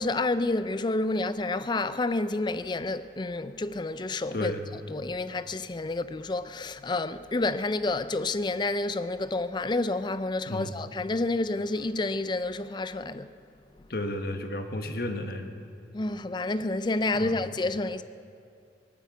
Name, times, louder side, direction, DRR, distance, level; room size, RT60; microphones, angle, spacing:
voice 1, 0.0-4.5 4.9-13.3 15.9-18.0, left 2 dB, 25° left, 0.4 m, -29 dB
voice 2, 4.3-4.6 10.5-10.7 13.9-15.5 17.1-17.4, left 1 dB, 55° left, 1.2 m, -32 dB
19.0 x 9.0 x 8.2 m
head